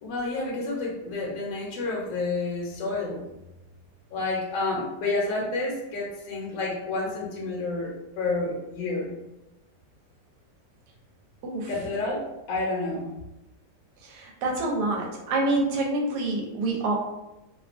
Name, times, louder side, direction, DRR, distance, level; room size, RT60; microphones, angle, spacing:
voice 1, 0.0-3.2 4.1-9.1 11.7-13.1, left 3 dB, 65° left, -3 dB, 0.9 m, -29 dB
voice 2, 14.1-16.9, right 2 dB, 80° right, 0 dB, 1.2 m, -27 dB
2.8 x 2.3 x 2.4 m, 0.95 s
omnidirectional pair, 1.8 m